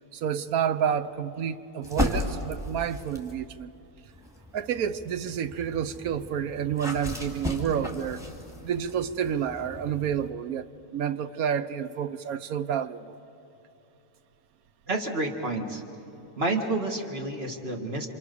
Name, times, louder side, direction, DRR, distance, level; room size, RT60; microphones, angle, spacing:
voice 1, 0.1-3.7 4.5-8.2 8.6-10.7 10.9-13.1, right 8 dB, 90° right, 13 dB, 1.3 m, -29 dB
sound 1, 1.8-3.4 4.1-10.3, left 1 dB, ahead, 2.8 m, -35 dB
voice 2, 14.9-15.8 16.4-18.1, right 2 dB, 45° right, 3 dB, 2.2 m, -29 dB
28.5 x 26.0 x 6.9 m, 2.9 s
omnidirectional pair, 1.5 m